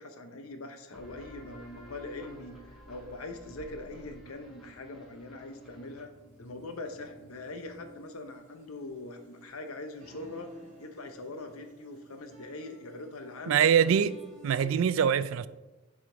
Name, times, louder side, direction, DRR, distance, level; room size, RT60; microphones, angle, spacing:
voice 1, 0.0-6.1 6.4-10.5 10.8-14.0, left 2 dB, 85° left, 0.8 m, -42 dB
sound 1, 0.9-8.3, left 1 dB, ahead, 1.4 m, -53 dB
sound 2, 1.4-14.8, right 1 dB, 35° right, 2.1 m, -55 dB
voice 2, 13.5-14.2 14.4-15.5, right 8 dB, 70° right, 0.3 m, -24 dB
7.1 x 5.1 x 3.8 m
head